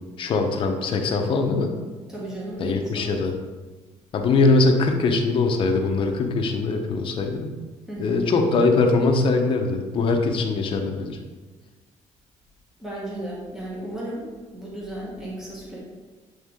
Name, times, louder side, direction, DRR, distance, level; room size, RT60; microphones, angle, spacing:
voice 1, 0.2-1.7 2.6-3.3 4.1-7.5 8.0-11.2, left 3 dB, 45° left, 3 dB, 0.6 m, -22 dB
voice 2, 2.1-3.2 7.9-8.3 12.8-15.8, right 1 dB, 5° right, -6 dB, 1.0 m, -34 dB
7.9 x 3.6 x 3.6 m, 1.3 s
cardioid pair, 170°, 13 cm